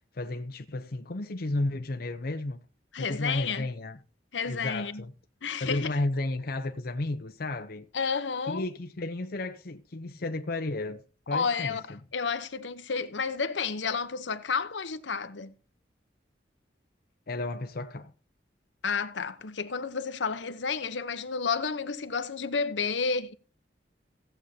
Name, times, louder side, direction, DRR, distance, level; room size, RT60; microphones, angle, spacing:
voice 1, 0.1-2.6 3.0-4.0 4.5-5.1 5.6-7.9 8.5-12.0 17.3-18.1, left 2 dB, 55° left, 0.7 m, -33 dB
voice 2, 2.9-3.7 4.3-5.0 5.4-6.1 7.9-8.7 11.3-15.5 18.8-23.3, left 5 dB, 80° left, 0.9 m, -31 dB
16.5 x 8.0 x 2.8 m
head